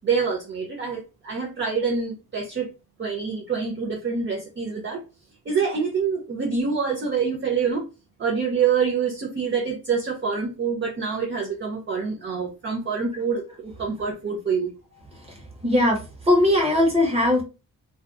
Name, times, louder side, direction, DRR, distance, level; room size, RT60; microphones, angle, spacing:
voice 1, 0.0-2.7 3.0-5.0 5.5-7.8 8.2-14.7, right 5 dB, 35° right, -1 dB, 0.6 m, -26 dB
voice 2, 15.6-16.0 16.3-17.4, left 1 dB, 20° right, 0 dB, 1.1 m, -19 dB
2.6 x 2.2 x 3.6 m, 0.30 s
wide cardioid pair, 160°, 34 cm